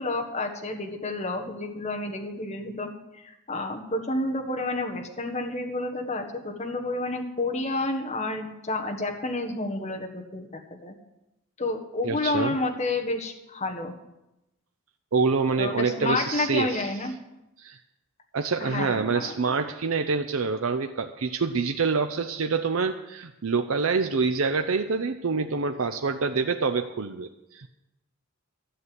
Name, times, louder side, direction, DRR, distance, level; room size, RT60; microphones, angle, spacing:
voice 1, 0.0-2.9 3.2-10.9 11.6-13.9 15.6-17.1 18.6-19.4, left 2 dB, 30° left, 2 dB, 1.5 m, -30 dB
voice 2, 12.0-12.6 15.1-16.9 17.6-17.8 18.3-27.7, right 4 dB, 75° right, 7 dB, 0.6 m, -26 dB
12.5 x 6.7 x 9.5 m, 0.92 s
head